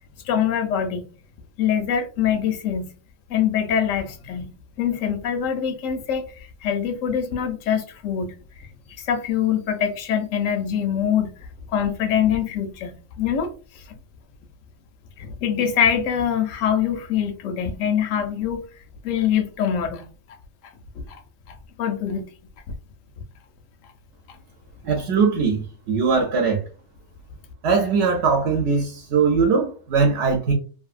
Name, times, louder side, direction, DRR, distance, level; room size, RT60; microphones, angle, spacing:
voice 1, 0.2-1.1 1.6-2.9 3.3-4.5 4.8-8.7 9.0-11.3 11.7-14.0 15.2-18.6 19.0-20.1 21.1-21.2 21.5-22.3, left 8 dB, 85° left, 1.0 m, -24 dB
voice 2, 24.8-25.6 25.9-26.6 27.6-30.5, right 5 dB, 70° right, 0.8 m, -20 dB
2.7 x 2.6 x 2.3 m
omnidirectional pair, 1.3 m